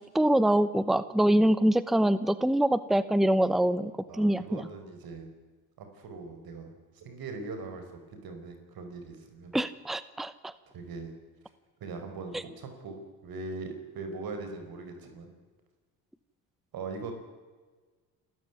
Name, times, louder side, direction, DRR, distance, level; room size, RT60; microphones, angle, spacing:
voice 1, 0.0-4.7 9.5-10.5 12.3-12.4, right 1 dB, ahead, 15 dB, 1.0 m, -25 dB
voice 2, 4.1-5.3 5.8-7.8 8.2-9.5 10.7-11.1 11.8-15.3 16.7-17.1, right 3 dB, 55° right, 6 dB, 5.2 m, -40 dB
28.0 x 14.0 x 9.5 m, 1.4 s
supercardioid pair, 80°, 41 cm